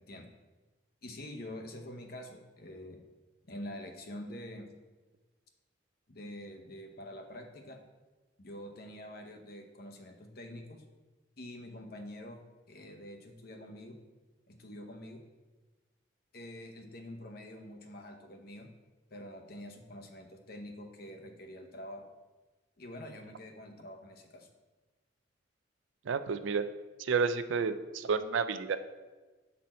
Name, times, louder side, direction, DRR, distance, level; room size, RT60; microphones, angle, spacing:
voice 1, 1.0-3.0 3.5-4.7 6.1-7.8 8.4-10.8 11.4-12.4 12.7-14.0 14.5-15.2 16.3-18.7 19.1-22.1 22.8-24.5, left 1 dB, 50° left, 3 dB, 0.8 m, -46 dB
voice 2, 26.1-26.6 27.0-28.8, right 5 dB, 75° right, 11 dB, 0.4 m, -30 dB
7.4 x 4.1 x 4.2 m, 1.2 s
head